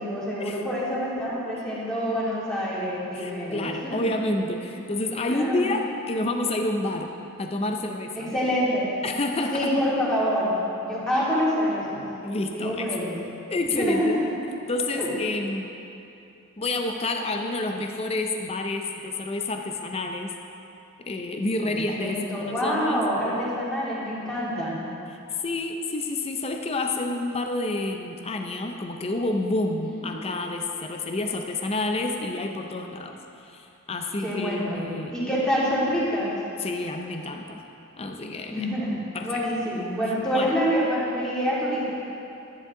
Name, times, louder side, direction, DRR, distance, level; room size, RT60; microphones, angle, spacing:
voice 1, 0.0-4.0 5.3-5.7 8.2-8.9 9.5-10.5 10.8-12.1 12.5-13.1 13.7-14.4 14.9-15.1 21.6-24.8 29.8-29.9 34.2-34.8 35.1-36.4 38.5-41.9, equal, 5° left, -9 dB, 2.6 m, -26 dB
voice 2, 3.1-7.1 7.4-8.3 9.0-9.7 12.2-13.0 13.5-14.2 14.7-15.7 16.6-20.3 21.0-23.0 25.4-35.1 36.6-37.6 38.0-38.7 39.1-39.4 40.3-40.5, left 2 dB, 30° left, 3 dB, 0.5 m, -29 dB
11.5 x 10.0 x 3.7 m, 2.8 s
head